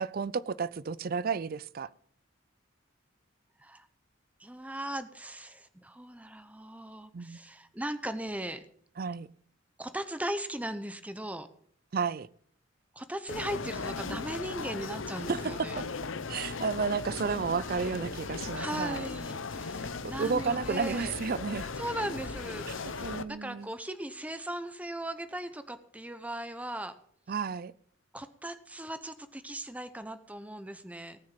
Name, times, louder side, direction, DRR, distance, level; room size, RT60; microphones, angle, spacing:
voice 1, 0.0-1.9 7.1-7.4 9.0-9.3 11.9-12.3 15.3-15.8 16.3-19.1 20.2-21.7 22.7-22.8 23.0-23.7 27.3-27.7, right 5 dB, 50° right, 0.4 m, -32 dB
voice 2, 4.4-8.6 9.8-11.5 12.9-15.7 18.5-21.1 21.8-26.9 28.1-31.2, right 1 dB, 5° right, 0.8 m, -38 dB
sound 1, 13.3-23.2, left 4 dB, 80° left, 0.8 m, -37 dB
18.5 x 6.4 x 7.4 m
head